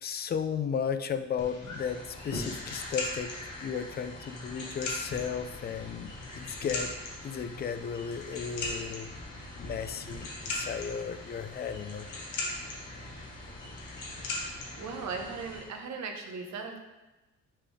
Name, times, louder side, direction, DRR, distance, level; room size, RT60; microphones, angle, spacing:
voice 1, 0.0-6.9 7.2-9.1 9.6-12.1, left 7 dB, 35° left, 10 dB, 0.4 m, -35 dB
sound 1, 1.4-15.6, left 2 dB, 85° left, 1.3 m, -39 dB
voice 2, 14.8-16.8, right 4 dB, 65° right, 4 dB, 0.9 m, -37 dB
5.8 x 3.4 x 4.9 m, 1.1 s
cardioid pair, 90°, 30 cm